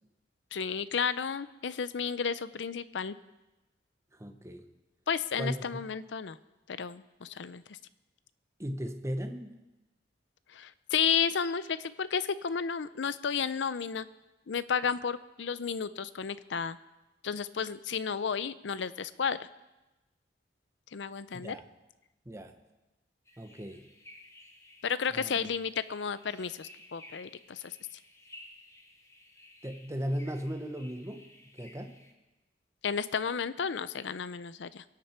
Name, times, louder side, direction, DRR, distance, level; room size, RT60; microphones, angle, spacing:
voice 1, 0.5-3.1 5.1-6.4 6.7-7.6 10.5-14.1 14.5-16.8 17.2-19.5 20.9-21.5 24.8-27.8 32.8-34.8, left 6 dB, 70° left, 15 dB, 0.5 m, -32 dB
voice 2, 4.1-4.7 5.4-5.8 8.6-9.6 21.3-21.6 22.2-22.5 23.4-23.8 25.1-25.5 29.6-31.3 31.5-32.0, equal, 15° right, 6 dB, 1.0 m, -37 dB
sound 1, 23.3-32.1, left 1 dB, 15° left, 1.4 m, -55 dB
22.5 x 8.6 x 4.4 m, 1.0 s
head